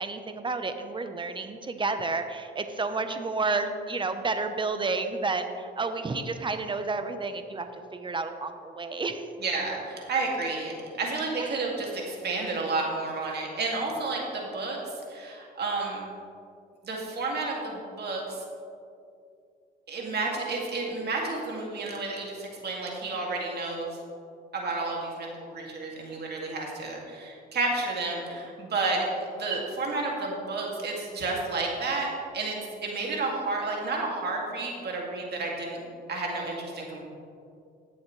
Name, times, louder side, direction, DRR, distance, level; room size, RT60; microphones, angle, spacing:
voice 1, 0.0-9.3 11.4-11.6, right 3 dB, 25° right, 8 dB, 0.9 m, -31 dB
voice 2, 9.4-16.1 16.8-18.4 19.9-24.0 24.5-37.0, right 3 dB, 55° right, -1 dB, 2.4 m, -31 dB
17.0 x 7.1 x 3.3 m, 2.4 s
cardioid pair, 90°, 20 cm